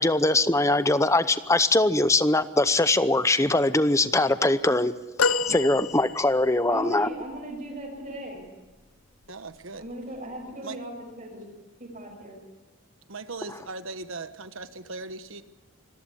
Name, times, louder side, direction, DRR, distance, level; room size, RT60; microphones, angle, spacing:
voice 1, 0.0-4.9 5.5-7.1, left 2 dB, 15° left, 13 dB, 0.7 m, -22 dB
sound 1, 5.2-6.6 7.3-7.4, left 5 dB, 85° left, 0.8 m, -27 dB
voice 2, 6.7-8.4 9.7-10.9 11.2-11.4 11.8-12.4, equal, 40° right, 1 dB, 6.0 m, -37 dB
voice 3, 9.3-9.9 10.6-10.8 13.1-15.4, right 3 dB, 75° right, 11 dB, 1.3 m, -38 dB
26.0 x 14.0 x 9.9 m, 1.2 s
head